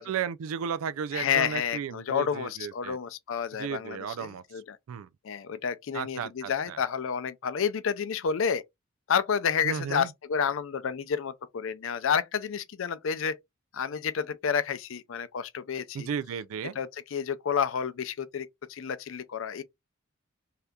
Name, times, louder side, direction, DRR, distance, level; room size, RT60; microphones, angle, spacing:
voice 1, 0.0-3.0 3.6-4.4 4.9-5.1 5.9-6.8 9.6-10.1 15.9-16.8, right 7 dB, 80° right, 0.3 m, -34 dB
voice 2, 1.1-4.8 5.2-8.6 9.1-13.4 13.7-16.1 16.7-19.6, left 7 dB, 65° left, 0.4 m, -30 dB
3.4 x 2.7 x 2.3 m
head